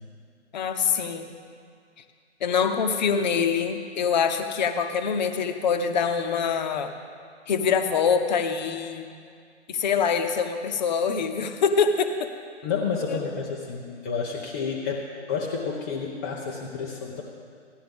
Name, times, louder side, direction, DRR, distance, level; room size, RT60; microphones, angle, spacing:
voice 1, 0.5-1.3 2.4-6.9 7.5-9.1 9.7-12.3 13.1-13.2, left 6 dB, 40° left, 7 dB, 0.9 m, -24 dB
voice 2, 12.6-17.2, left 5 dB, 15° left, -3 dB, 0.5 m, -30 dB
15.5 x 10.5 x 3.5 m, 2.2 s
figure-of-eight pair, 130°, 35 cm